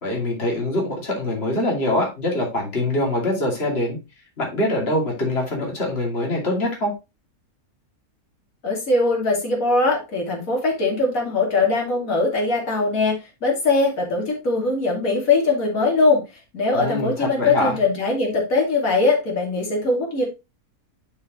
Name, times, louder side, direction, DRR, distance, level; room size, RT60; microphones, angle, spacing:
voice 1, 0.0-4.0 4.4-6.9 16.7-17.8, left 1 dB, 40° left, -1 dB, 2.9 m, -24 dB
voice 2, 8.6-16.2 16.5-20.2, left 3 dB, 65° left, -2 dB, 3.1 m, -21 dB
11.5 x 4.8 x 3.0 m, 0.26 s
omnidirectional pair, 1.6 m